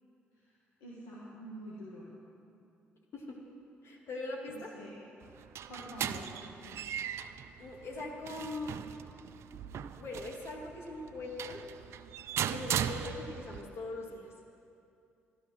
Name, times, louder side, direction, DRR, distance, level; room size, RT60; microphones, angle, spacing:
voice 1, 0.8-2.1 4.5-5.0 5.7-6.9, equal, 85° left, -6 dB, 1.8 m, -47 dB
voice 2, 3.8-4.7 7.6-8.8 10.0-11.6 12.5-14.3, left 2 dB, 60° left, -1 dB, 2.6 m, -41 dB
sound 1, 5.2-13.6, right 9 dB, 65° right, 0.5 m, -38 dB
12.5 x 11.0 x 6.1 m, 2.5 s
hypercardioid pair, 55°, 5 cm